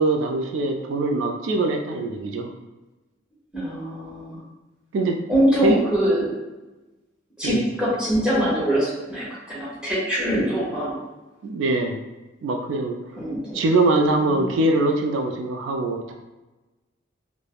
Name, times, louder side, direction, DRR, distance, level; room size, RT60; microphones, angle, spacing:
voice 1, 0.0-2.5 4.9-5.2 5.6-5.8 7.4-7.6 11.4-12.0 12.4-13.0 13.5-16.1, right 2 dB, 80° right, 4 dB, 0.3 m, -22 dB
voice 2, 3.5-4.4 5.3-6.3 7.4-10.9 13.2-13.6 14.3-14.6, equal, 5° right, -8 dB, 0.9 m, -23 dB
3.2 x 2.1 x 2.3 m, 1.1 s
head